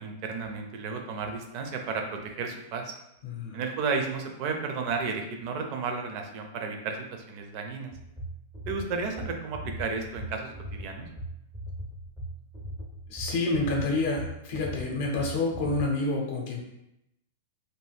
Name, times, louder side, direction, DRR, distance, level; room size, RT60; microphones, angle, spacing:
voice 1, 0.0-2.9 3.5-7.9 8.7-11.1, right 4 dB, 40° right, 4 dB, 0.5 m, -33 dB
voice 2, 3.2-3.6 13.1-16.6, left 2 dB, 55° left, 0 dB, 0.6 m, -28 dB
sound 1, 7.9-15.9, right 1 dB, 10° left, 0.5 m, -39 dB
2.6 x 2.3 x 3.3 m, 0.85 s
supercardioid pair, 150°, 0 cm